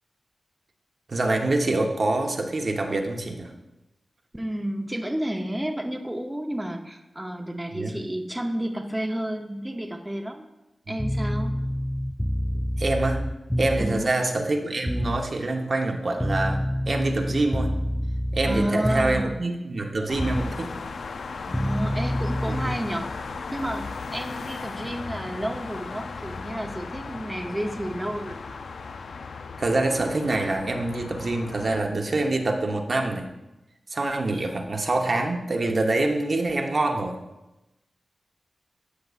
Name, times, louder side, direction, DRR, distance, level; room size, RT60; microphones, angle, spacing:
voice 1, 1.1-3.5 7.7-8.0 12.5-13.3 13.6-17.8 18.3-20.8 22.5-22.8 29.6-33.3 33.9-37.2, right 2 dB, 55° right, 2 dB, 0.9 m, -26 dB
voice 2, 4.3-10.5 10.9-11.6 13.8-14.1 18.4-19.4 21.5-23.1 23.5-28.6, right 1 dB, 10° right, 3 dB, 0.7 m, -31 dB
sound 1, 11.0-14.1 14.9-15.3 16.2-19.4 20.2-20.6 21.5-22.8, equal, 5° left, 0.3 m, -27 dB
sound 2, 20.1-31.8, left 4 dB, 80° left, 0.4 m, -36 dB
13.0 x 5.9 x 2.5 m, 0.99 s
cardioid pair, 60°, 0 cm